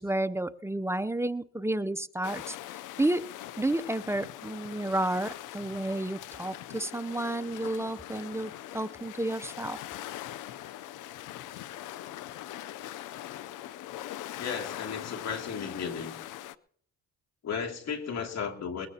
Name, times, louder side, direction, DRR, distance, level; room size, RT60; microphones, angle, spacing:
voice 1, 0.0-9.8, right 1 dB, 10° right, 13 dB, 0.5 m, -31 dB
sound 1, 2.2-16.6, left 13 dB, 90° left, 0.6 m, -42 dB
voice 2, 14.4-16.1 17.4-18.9, left 6 dB, 60° left, 3 dB, 2.5 m, -34 dB
21.0 x 16.0 x 2.8 m, 0.65 s
cardioid pair, 90°, 30 cm